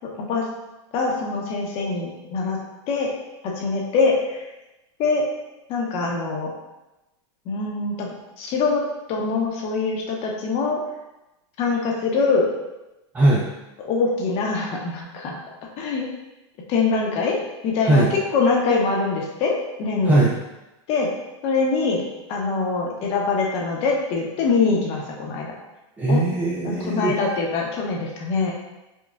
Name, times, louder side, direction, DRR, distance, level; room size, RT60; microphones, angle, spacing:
voice 1, 0.0-0.5 0.9-2.6 2.9-3.1 3.4-4.4 5.0-5.2 5.7-6.5 7.5-8.1 8.4-8.8 9.1-10.8 11.6-12.5 13.8-15.4 15.8-16.1 16.7-17.4 17.6-18.0 18.3-20.2 20.9-21.1 21.4-22.0 22.3-25.5 26.1-26.2 26.6-28.5, left 4 dB, 40° left, -1 dB, 0.8 m, -23 dB
voice 2, 13.1-13.5 17.8-18.1 20.0-20.3 26.0-27.1, right 2 dB, 10° right, -5 dB, 0.4 m, -19 dB
5.2 x 2.3 x 2.4 m, 1.0 s
supercardioid pair, 140°, 15 cm